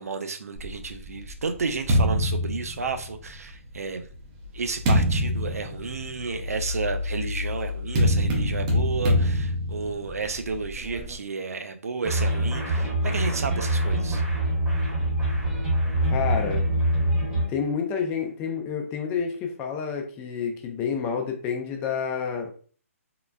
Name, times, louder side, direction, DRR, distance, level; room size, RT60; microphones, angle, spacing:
voice 1, 0.0-4.1 4.5-14.2, right 4 dB, 80° right, 7 dB, 0.5 m, -32 dB
sound 1, 0.6-3.4 4.1-11.1, left 1 dB, 30° right, 0.6 m, -26 dB
sound 2, 12.0-17.5, right 1 dB, 10° right, 1.0 m, -24 dB
voice 2, 16.0-16.6 17.5-22.5, left 6 dB, 20° left, 4 dB, 0.5 m, -29 dB
3.8 x 2.1 x 2.2 m, 0.43 s
hypercardioid pair, 145°, 8 cm